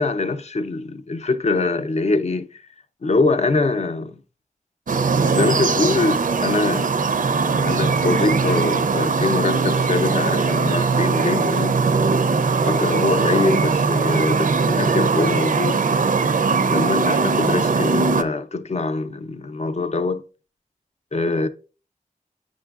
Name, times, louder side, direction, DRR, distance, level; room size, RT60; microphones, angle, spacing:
voice 1, 0.0-2.6 3.0-4.2 5.3-6.9 7.3-11.8 12.6-15.8 16.6-20.2 21.1-21.5, left 3 dB, 50° left, 0.5 m, -23 dB
sound 1, 4.9-18.2, right 4 dB, 70° right, 0.5 m, -20 dB
8.1 x 6.0 x 2.4 m
wide cardioid pair, 55°, 14 cm